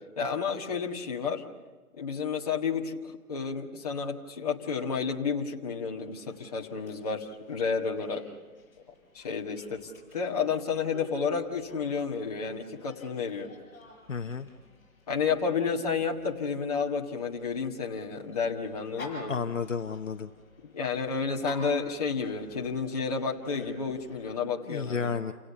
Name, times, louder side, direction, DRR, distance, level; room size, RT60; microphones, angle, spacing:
voice 1, 0.2-1.4 1.9-8.2 9.1-13.5 15.1-19.4 20.6-25.1, left 5 dB, 25° left, -1 dB, 1.7 m, -31 dB
Dog, 6.0-24.3, left 3 dB, 5° left, 5.9 m, -51 dB
voice 2, 14.1-14.5 19.3-20.3 24.7-25.3, left 6 dB, 60° left, 7 dB, 1.0 m, -31 dB
29.0 x 17.5 x 6.9 m, 1.4 s
hypercardioid pair, 170°, 44 cm